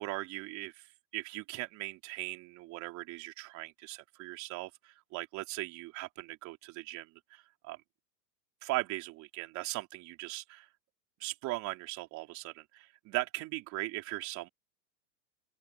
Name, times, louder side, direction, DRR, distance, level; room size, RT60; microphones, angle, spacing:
voice 1, 0.0-7.8 8.6-10.7 11.2-14.5, right 20 dB, 35° right, 3.9 m, -39 dB
open air
hypercardioid pair, 145°, 49 cm